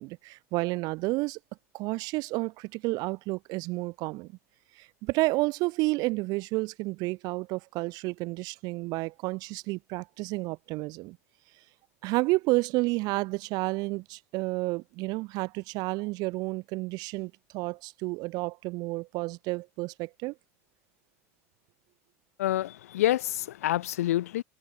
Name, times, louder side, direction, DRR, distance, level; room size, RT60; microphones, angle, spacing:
voice 1, 0.0-1.4 1.7-4.4 4.8-11.2 12.0-20.3, right 23 dB, 55° right, 0.5 m, -31 dB
voice 2, 22.4-24.4, left 14 dB, 80° left, 0.9 m, -27 dB
hypercardioid pair, 90°, 8 cm